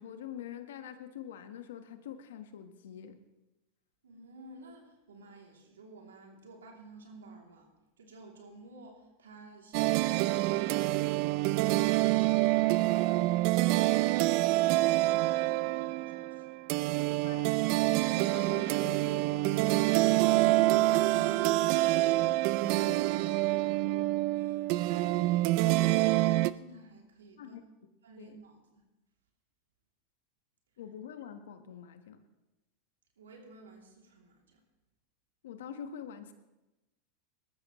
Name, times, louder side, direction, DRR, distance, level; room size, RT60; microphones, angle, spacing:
voice 1, 0.0-3.2 17.1-19.8 20.1-23.1 27.4-27.6 28.2-28.4 30.8-32.2 35.4-36.3, left 8 dB, 80° left, 8 dB, 1.4 m, -46 dB
voice 2, 4.0-7.7 8.0-16.5 24.3-27.6 28.0-28.8 33.2-34.6, right 2 dB, 90° right, 0 dB, 3.0 m, -53 dB
sound 1, 9.7-26.5, right 18 dB, 60° right, 0.4 m, -27 dB
20.0 x 13.5 x 3.2 m, 1.0 s
hypercardioid pair, 100°, 0 cm